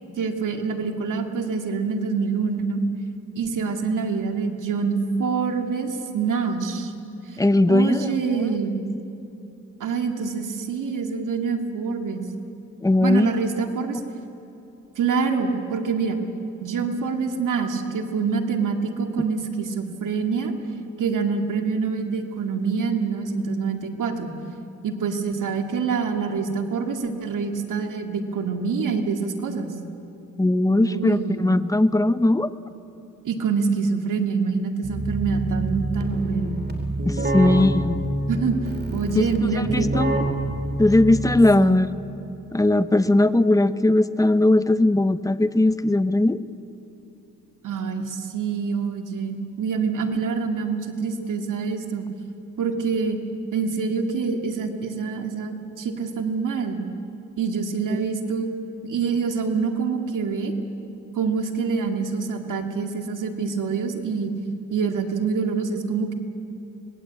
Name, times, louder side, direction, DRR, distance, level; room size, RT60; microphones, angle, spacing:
voice 1, 0.2-2.8 3.4-6.9 7.7-8.8 9.8-12.2 13.0-14.0 15.0-16.2 16.6-20.5 21.0-24.3 24.8-29.7 30.7-31.6 33.2-36.6 37.4-37.6 38.3-38.6 38.9-39.9 41.6-41.7 47.6-52.1 52.6-53.2 53.5-56.8 57.4-58.5 58.8-60.5 61.1-64.3 64.7-66.1, right 5 dB, 85° right, 4 dB, 2.3 m, -26 dB
voice 2, 7.4-8.4 12.8-13.3 30.4-32.5 37.0-38.0 39.1-39.2 39.7-40.1 40.8-41.9 42.5-46.4 57.9-58.0, left 2 dB, 10° left, 12 dB, 0.9 m, -19 dB
Keyboard (musical), 34.8-41.7, right 1 dB, 35° right, 3.4 m, -27 dB
26.0 x 20.5 x 8.4 m, 3.0 s
cardioid pair, 85°, 31 cm